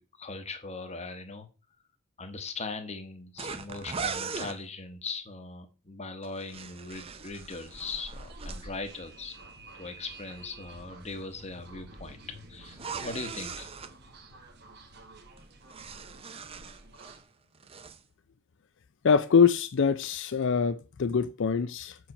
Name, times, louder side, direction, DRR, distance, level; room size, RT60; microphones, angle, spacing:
voice 1, 0.0-1.5 2.2-9.3 9.8-12.2 12.5-13.7, left 3 dB, 30° left, 1.1 m, -40 dB
sound 1, 3.4-4.6 6.2-8.6 12.7-13.9 15.4-17.2 17.5-18.0, right 5 dB, 25° right, 0.6 m, -39 dB
sound 2, 6.5-17.2, right 1 dB, 50° right, 1.5 m, -49 dB
voice 2, 19.0-22.0, left 6 dB, 55° left, 0.4 m, -24 dB
7.2 x 4.6 x 5.3 m
head